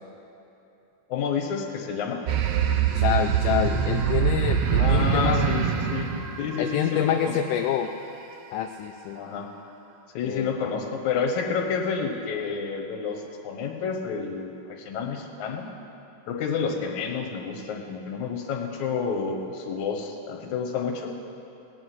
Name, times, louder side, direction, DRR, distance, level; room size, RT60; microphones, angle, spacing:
voice 1, 1.1-2.2 4.7-6.1 6.4-7.4 9.1-9.5 10.1-15.7 16.3-21.1, left 6 dB, 65° left, 2 dB, 2.6 m, -29 dB
sound 1, 2.3-7.2, right 8 dB, 85° right, 1.3 m, -24 dB
voice 2, 3.0-5.5 6.6-7.9 8.5-9.2 10.2-10.5, left 10 dB, 80° left, 4 dB, 2.1 m, -27 dB
18.5 x 6.4 x 9.5 m, 3.0 s
omnidirectional pair, 3.9 m